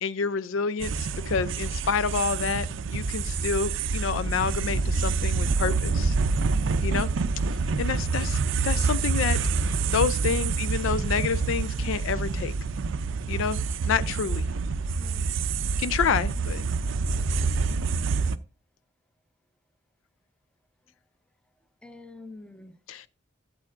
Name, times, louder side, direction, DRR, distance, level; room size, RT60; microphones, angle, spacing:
voice 1, 0.0-6.1 6.8-7.1 7.8-9.4 9.9-12.5 13.3-14.4 15.8-16.6 22.9-23.1, left 6 dB, 70° left, 0.4 m, -28 dB
sound 1, 0.8-18.4, right 4 dB, 60° right, 0.4 m, -27 dB
voice 2, 8.7-9.0 15.0-15.5 21.8-22.8, left 3 dB, 5° left, 0.7 m, -46 dB
13.0 x 7.5 x 2.5 m
head